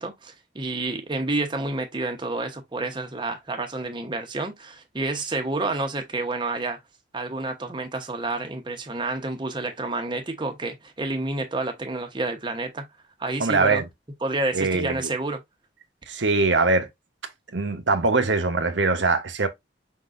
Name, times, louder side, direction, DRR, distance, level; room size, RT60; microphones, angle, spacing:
voice 1, 0.0-6.8 7.1-12.9 13.2-13.8 14.2-15.4, right 2 dB, 25° right, 0.9 m, -29 dB
voice 2, 13.4-13.8 14.5-14.9 16.1-16.9 17.5-19.5, right 3 dB, 75° right, 1.0 m, -22 dB
5.2 x 3.8 x 2.5 m
head